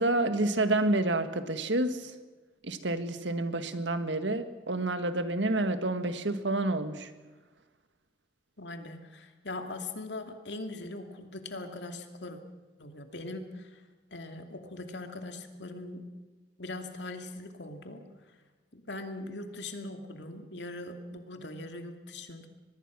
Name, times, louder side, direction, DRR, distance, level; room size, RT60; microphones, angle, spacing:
voice 1, 0.0-2.1 2.6-7.1, right 2 dB, 90° right, 10 dB, 1.7 m, -29 dB
voice 2, 8.6-12.4 12.8-13.7 14.1-16.0 16.6-18.0 18.7-22.5, left 2 dB, 75° left, 6 dB, 2.5 m, -41 dB
24.0 x 20.5 x 6.2 m, 1.3 s
head